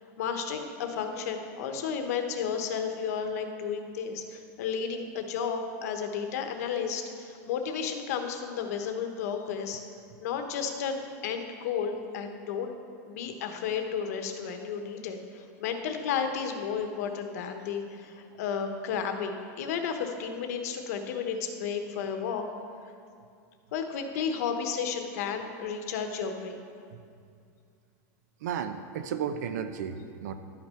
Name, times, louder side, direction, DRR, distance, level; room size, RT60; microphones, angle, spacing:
voice 1, 0.2-9.8 10.2-12.7 13.1-22.4 23.7-26.6, left 6 dB, 65° left, 5 dB, 1.0 m, -33 dB
voice 2, 28.4-30.3, right 8 dB, 80° right, 9 dB, 0.6 m, -34 dB
12.0 x 6.0 x 5.6 m, 2.3 s
supercardioid pair, 170°, 9 cm